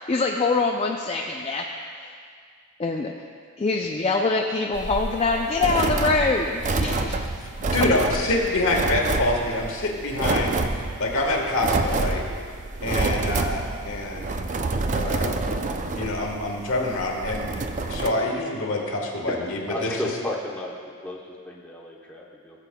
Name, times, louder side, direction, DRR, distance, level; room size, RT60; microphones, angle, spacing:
voice 1, 0.0-1.6 2.0-2.1 2.8-3.1 3.6-7.2, left 3 dB, 25° left, 1 dB, 0.4 m, -24 dB
sound 1, 4.7-18.1, right 3 dB, 35° right, 0.4 m, -28 dB
voice 2, 7.7-12.2 12.8-14.3 15.0-15.4 15.9-17.5 17.9-19.9, left 2 dB, 65° left, 0 dB, 1.4 m, -26 dB
voice 3, 19.7-20.8 21.0-22.7, left 1 dB, 5° left, -3 dB, 0.8 m, -33 dB
17.0 x 7.5 x 2.2 m, 2.1 s
head